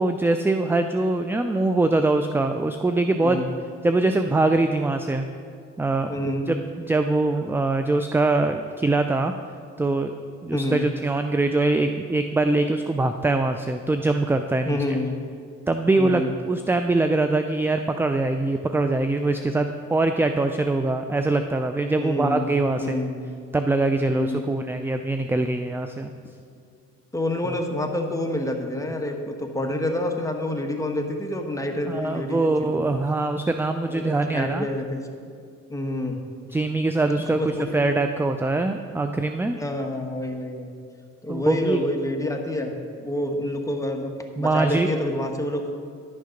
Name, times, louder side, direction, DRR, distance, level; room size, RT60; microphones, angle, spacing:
voice 1, 0.0-3.5 3.8-5.3 5.8-6.1 6.5-9.3 9.8-10.1 10.4-15.0 15.7-23.0 23.5-26.1 27.4-27.5 31.9-34.7 36.5-39.6 41.3-41.8 44.4-44.9, right 2 dB, 10° right, 7 dB, 0.3 m, -23 dB
voice 2, 6.1-6.5 10.5-10.8 14.7-15.2 16.0-16.3 22.0-23.2 24.1-24.5 27.1-33.0 33.9-35.0 35.7-36.2 37.3-37.9 39.5-40.7 41.2-42.7 43.0-44.1 44.4-45.7, left 1 dB, 10° left, 2 dB, 1.2 m, -28 dB
11.0 x 6.6 x 5.1 m, 2.2 s
cardioid pair, 90°, 30 cm